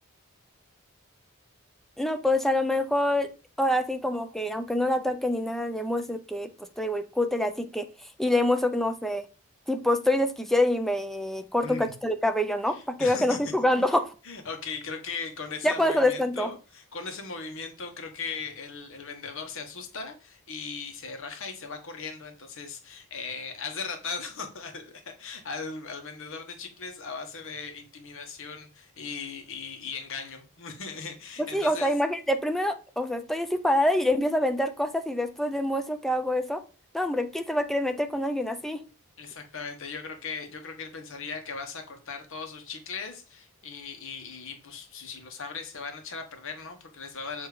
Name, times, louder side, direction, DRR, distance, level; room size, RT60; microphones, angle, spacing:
voice 1, 2.0-3.3 3.6-6.5 6.8-7.9 8.2-9.2 9.7-14.1 15.6-16.5 31.4-36.6 36.9-38.8, left 1 dB, ahead, 7 dB, 0.5 m, -26 dB
voice 2, 11.6-11.9 12.7-13.4 14.2-31.9 39.2-47.5, left 5 dB, 60° left, 5 dB, 1.2 m, -38 dB
6.8 x 2.9 x 4.9 m, 0.34 s
head